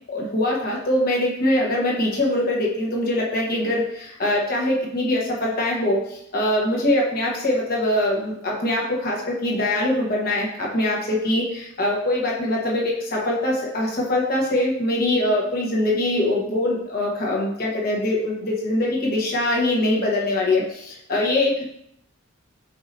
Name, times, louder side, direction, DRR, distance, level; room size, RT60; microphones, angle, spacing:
voice 1, 0.1-21.6, left 1 dB, 50° left, -3 dB, 1.0 m, -23 dB
4.7 x 4.1 x 2.6 m, 0.75 s
head